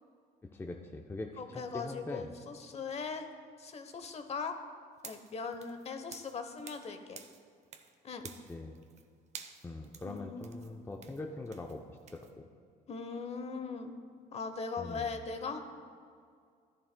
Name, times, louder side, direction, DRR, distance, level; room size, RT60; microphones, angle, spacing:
voice 1, 0.4-2.3 8.5-8.8 9.6-12.5 14.8-15.1, left 2 dB, 15° left, 2 dB, 0.5 m, -42 dB
voice 2, 1.4-3.3 3.6-4.6 5.0-7.2 8.0-8.2 10.0-10.4 12.9-13.9 14.3-15.6, left 5 dB, 40° left, 7 dB, 0.9 m, -39 dB
sound 1, 5.0-6.9 7.2-7.9 8.2-9.0 9.3-12.3, right 6 dB, 40° right, 0.7 m, -51 dB
13.0 x 11.0 x 2.2 m, 2.2 s
cardioid pair, 110°, 17 cm